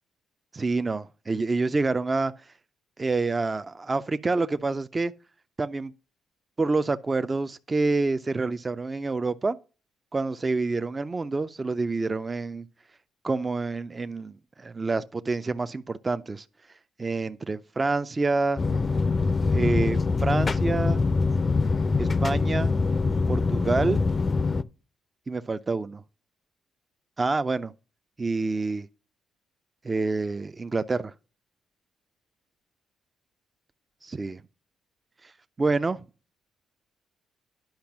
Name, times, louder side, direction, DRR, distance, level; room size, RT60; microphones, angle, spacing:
voice 1, 0.5-2.5 3.0-5.1 5.6-5.9 6.6-9.6 10.1-12.6 13.2-16.4 17.0-18.6 19.5-21.0 22.0-22.7 23.3-24.0 25.3-26.0 27.2-27.7 28.2-28.9 29.8-31.1 34.0-34.4 35.2-35.3 35.6-36.0, right 3 dB, 25° right, 0.5 m, -27 dB
sound 1, 18.6-24.6, left 4 dB, 30° left, 0.5 m, -24 dB
10.5 x 5.2 x 5.9 m
cardioid pair, 90°, 0 cm